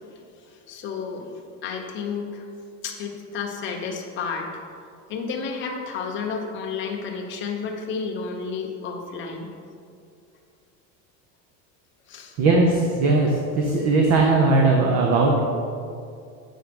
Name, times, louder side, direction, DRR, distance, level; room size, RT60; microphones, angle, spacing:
voice 1, 0.5-2.5 2.8-4.5 5.1-9.5 12.1-12.3, left 5 dB, 30° left, 0 dB, 1.0 m, -31 dB
voice 2, 12.4-15.4, right 3 dB, 40° right, 0 dB, 0.8 m, -19 dB
8.0 x 5.9 x 5.2 m, 2.4 s
cardioid pair, 170°, 41 cm